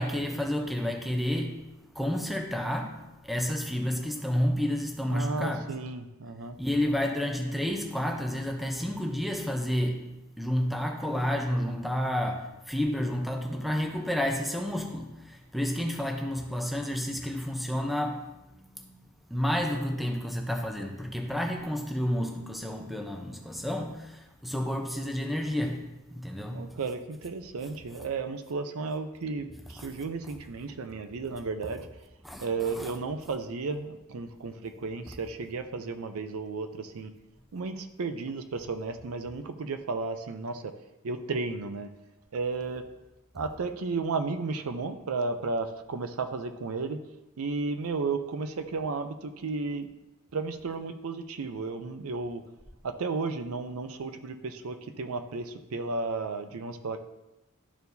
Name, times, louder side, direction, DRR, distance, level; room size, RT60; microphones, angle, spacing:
voice 1, 0.0-1.7 1.9-5.6 6.6-10.1 10.4-18.3 18.6-19.0 19.3-25.8 26.1-26.8 29.8-29.9 32.2-32.9, equal, ahead, 2 dB, 0.7 m, -30 dB
voice 2, 5.1-6.6 26.5-31.9 32.4-37.1 37.5-40.7 41.0-41.9 42.3-42.8 43.3-47.0 47.4-49.9 50.3-52.4 52.8-57.0, right 4 dB, 80° right, 8 dB, 0.5 m, -33 dB
12.0 x 4.5 x 2.7 m, 0.99 s
head